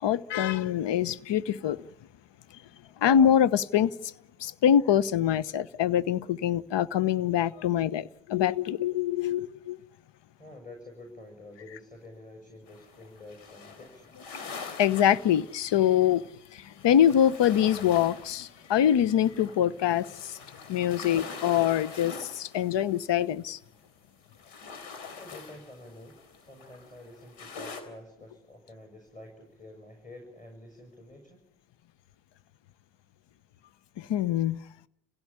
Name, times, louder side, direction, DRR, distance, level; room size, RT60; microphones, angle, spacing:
voice 1, 0.0-1.9 3.0-4.1 4.4-9.8 14.8-16.3 16.5-20.4 20.7-23.6 34.0-34.6, left 10 dB, 60° left, 1.1 m, -24 dB
voice 2, 10.4-14.3 25.2-31.4, left 1 dB, 15° left, 7.0 m, -48 dB
sound 1, 12.7-23.9 24.2-27.8, left 5 dB, 75° left, 3.9 m, -45 dB
29.0 x 17.0 x 8.7 m
hypercardioid pair, 45°, 49 cm